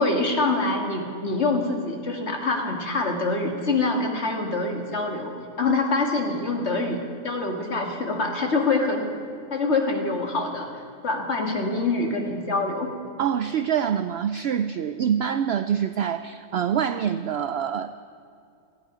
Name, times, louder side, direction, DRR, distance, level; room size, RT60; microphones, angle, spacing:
voice 1, 0.0-9.1 9.5-10.7 11.0-12.9, left 3 dB, 50° left, 2 dB, 2.1 m, -25 dB
voice 2, 13.2-18.0, right 8 dB, 65° right, 11 dB, 0.6 m, -25 dB
17.5 x 14.5 x 5.0 m, 2.4 s
omnidirectional pair, 1.5 m